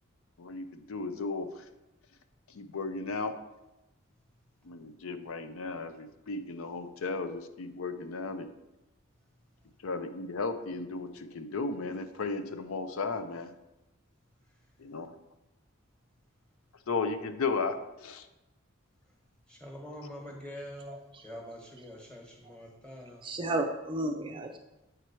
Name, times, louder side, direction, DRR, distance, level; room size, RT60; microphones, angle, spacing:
voice 1, 0.4-1.6 2.5-3.4 4.6-8.5 9.8-13.5 14.8-15.1 16.9-18.3, left 4 dB, 80° left, 9 dB, 0.5 m, -35 dB
voice 2, 19.5-23.3, equal, 5° left, -1 dB, 1.3 m, -45 dB
voice 3, 23.2-24.6, right 2 dB, 25° right, 4 dB, 0.4 m, -32 dB
7.9 x 4.6 x 4.3 m, 0.97 s
head